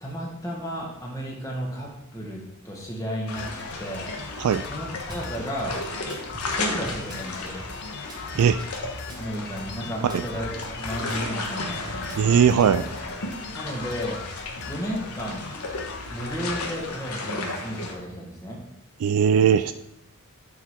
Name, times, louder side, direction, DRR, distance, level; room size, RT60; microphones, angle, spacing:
voice 1, 0.0-3.5 3.8-4.1 4.6-5.8 6.5-7.5 9.2-11.9 13.5-14.2 14.7-15.5 16.1-18.6, equal, 15° left, -2 dB, 1.6 m, -33 dB
sound 1, 3.3-17.9, left 2 dB, 90° left, 1.2 m, -34 dB
sound 2, 3.4-17.1, left 5 dB, 50° left, 0.5 m, -40 dB
Drum kit / Bass drum, 5.1-5.3 5.6-7.3 7.6-9.3 9.6-11.3 11.7-13.0, right 1 dB, 20° right, 1.1 m, -42 dB
voice 2, 12.2-12.8 19.0-19.7, right 7 dB, 75° right, 11 dB, 0.3 m, -19 dB
9.2 x 4.6 x 3.7 m, 0.81 s
head